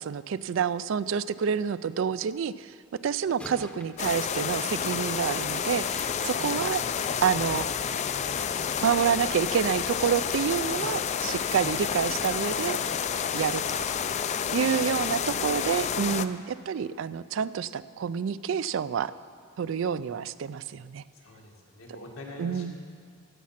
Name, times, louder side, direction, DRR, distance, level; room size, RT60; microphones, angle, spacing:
voice 1, 0.0-2.7 3.0-6.8 7.2-7.7 8.8-12.8 13.3-13.9 14.5-19.1 19.6-21.0 22.4-22.7, right 7 dB, 60° right, 16 dB, 0.3 m, -28 dB
sound 1, 3.3-5.8 9.6-13.4 13.8-14.0 14.6-14.7, left 1 dB, 5° left, 0.7 m, -50 dB
sound 2, 4.0-16.3, left 7 dB, 35° left, 0.3 m, -30 dB
voice 2, 6.4-6.7 21.1-22.8, left 1 dB, 85° left, -1 dB, 2.0 m, -44 dB
16.0 x 7.4 x 5.8 m, 2.1 s
head